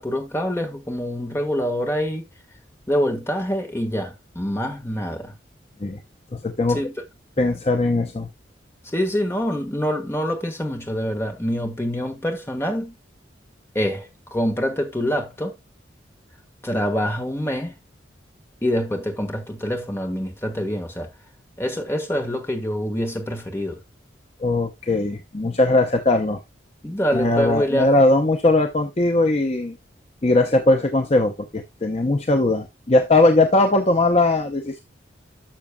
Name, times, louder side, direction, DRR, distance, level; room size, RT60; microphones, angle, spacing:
voice 1, 0.0-2.2 2.9-5.3 6.7-6.9 8.8-13.0 13.7-15.6 16.6-17.8 18.6-21.1 21.6-23.8 26.8-27.9, equal, 15° left, 1.5 m, -25 dB
voice 2, 6.3-6.8 7.4-8.3 24.4-26.4 27.1-29.8 30.2-34.8, left 2 dB, 35° left, 0.7 m, -19 dB
12.0 x 6.4 x 2.2 m
head